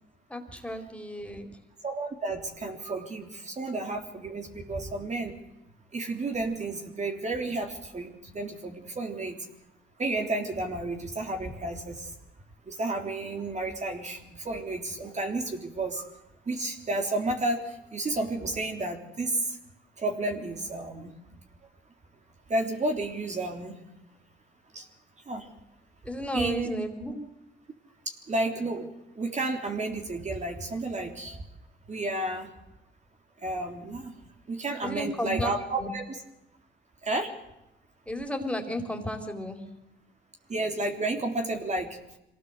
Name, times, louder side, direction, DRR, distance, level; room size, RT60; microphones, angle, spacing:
voice 1, 0.3-1.5 26.0-27.2 34.8-35.5 35.8-35.9 38.1-39.7, left 1 dB, 5° left, 5 dB, 4.3 m, -33 dB
voice 2, 1.8-5.3 5.9-9.4 10.0-12.1 12.7-16.1 16.5-19.6 20.0-21.1 22.5-23.8 24.7-24.9 25.3-25.5 26.3-26.7 28.1-28.9 29.2-31.4 31.9-32.5 33.4-34.1 34.5-36.2 37.0-37.3 40.5-42.0, right 2 dB, 35° right, 3 dB, 3.5 m, -31 dB
24.5 x 18.0 x 8.1 m, 0.89 s
cardioid pair, 90°, 20 cm